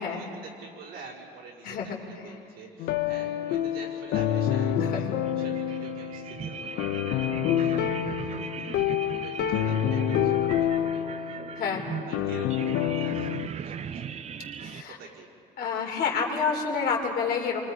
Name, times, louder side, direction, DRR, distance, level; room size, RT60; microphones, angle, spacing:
voice 1, 0.0-5.0 5.4-8.7 9.0-11.1 11.6-11.8 12.1-14.2 14.7-15.3, right 4 dB, 80° right, -4 dB, 5.1 m, -47 dB
voice 2, 1.6-2.4 4.8-5.2 11.6-12.0 14.6-15.0 15.6-17.7, left 5 dB, 65° left, 0 dB, 3.5 m, -29 dB
sound 1, 2.8-13.5, left 10 dB, 85° left, 1.0 m, -28 dB
sound 2, 5.2-14.8, right 7 dB, 40° right, 0.5 m, -38 dB
28.0 x 24.0 x 5.2 m, 2.5 s
cardioid pair, 110°, 17 cm